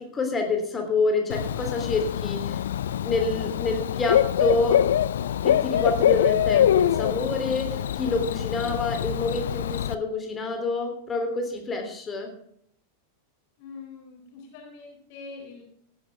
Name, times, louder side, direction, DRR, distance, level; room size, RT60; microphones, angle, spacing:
voice 1, 0.1-2.6 3.0-4.8 5.4-12.3, left 3 dB, 20° left, 3 dB, 3.2 m, -27 dB
Bird / Cricket, 1.3-9.9, left 10 dB, 60° left, 0.4 m, -24 dB
voice 2, 13.6-15.6, left 4 dB, 45° left, 0 dB, 4.4 m, -43 dB
17.5 x 10.0 x 3.5 m, 0.66 s
figure-of-eight pair, 90°, 0 cm